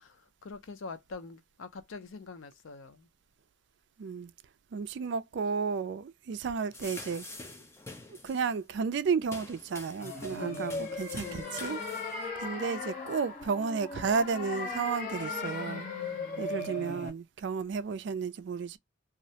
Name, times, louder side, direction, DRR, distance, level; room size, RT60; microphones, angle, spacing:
voice 1, 0.0-3.1 10.3-10.9 11.2-11.6, left 4 dB, 80° left, 0.5 m, -44 dB
voice 2, 4.0-4.3 4.7-7.2 8.2-11.8 12.4-15.9 16.4-18.8, right 5 dB, 60° right, 0.3 m, -32 dB
sound 1, 6.7-8.6 9.2-12.3, left 2 dB, 15° left, 0.4 m, -46 dB
sound 2, 10.0-17.1, left 3 dB, 40° left, 0.8 m, -37 dB
2.4 x 2.0 x 2.7 m
head